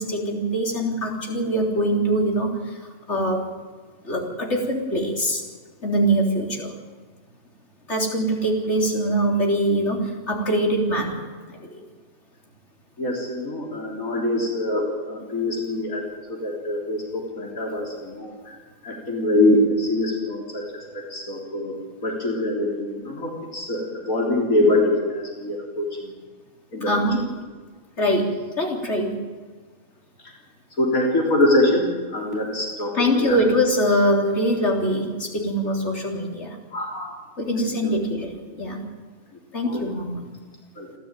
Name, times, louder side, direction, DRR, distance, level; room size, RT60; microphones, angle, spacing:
voice 1, 0.0-2.5 3.1-3.4 4.0-5.4 5.8-6.7 7.9-11.3 11.7-11.8 26.9-27.2 28.0-28.3 28.6-29.2 32.9-36.5 37.4-38.8 39.5-40.3, equal, 55° left, 0 dB, 4.1 m, -23 dB
voice 2, 13.0-16.0 16.3-18.3 18.8-20.6 20.9-21.7 22.0-25.9 26.7-26.9 30.8-31.9 32.1-32.9 33.2-33.4 36.7-37.1 37.8-37.9 39.7-39.8 40.8-40.9, left 1 dB, 85° left, -1 dB, 4.2 m, -23 dB
28.5 x 12.5 x 9.2 m, 1.4 s
omnidirectional pair, 1.4 m